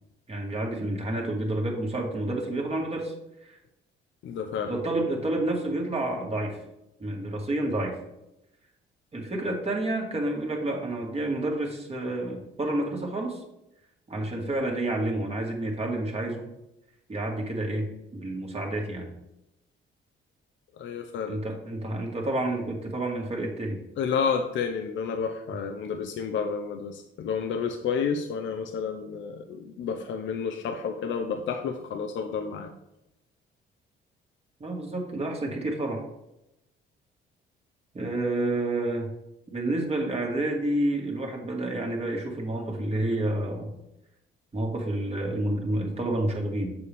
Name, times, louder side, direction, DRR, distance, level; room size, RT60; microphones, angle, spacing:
voice 1, 0.3-3.1 3.4-3.6 4.7-6.6 7.0-8.0 9.1-13.4 14.1-16.5 17.1-19.1 21.3-23.8 34.6-36.0 37.9-39.1 39.5-43.7 44.5-46.8, right 1 dB, 30° right, 0 dB, 2.0 m, -29 dB
voice 2, 4.2-4.8 20.8-21.4 24.0-32.7, left 6 dB, 70° left, 5 dB, 0.7 m, -30 dB
6.9 x 6.9 x 3.5 m, 0.87 s
cardioid pair, 90°, 20 cm